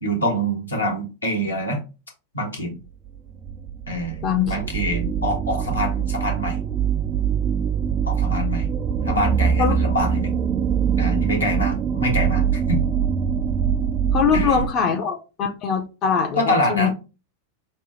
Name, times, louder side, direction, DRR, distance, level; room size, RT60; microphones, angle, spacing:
voice 1, 0.0-1.8 2.3-2.8 3.9-6.6 8.0-8.7 9.0-10.3 11.0-12.8 14.3-14.6 16.4-16.9, equal, 80° left, 1 dB, 1.2 m, -25 dB
sound 1, 3.1-14.7, right 7 dB, 30° right, 0.3 m, -23 dB
voice 2, 4.2-4.6 9.6-9.7 14.1-16.9, left 7 dB, 35° left, 4 dB, 0.6 m, -22 dB
5.4 x 2.2 x 3.1 m, 0.31 s
figure-of-eight pair, 90°, 0 cm